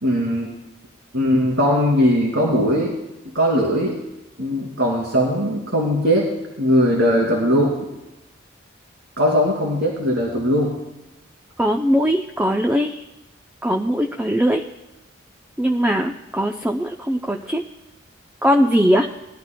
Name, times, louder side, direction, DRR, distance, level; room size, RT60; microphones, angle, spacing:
voice 1, 0.0-0.5 1.1-2.9 3.3-4.0 4.4-6.2 6.6-7.7 9.2-10.7, equal, 80° right, -4 dB, 2.7 m, -19 dB
voice 2, 11.6-13.0 13.6-14.6 15.6-17.6 18.4-19.1, equal, 10° right, 2 dB, 0.5 m, -20 dB
21.5 x 12.5 x 2.2 m, 0.98 s
head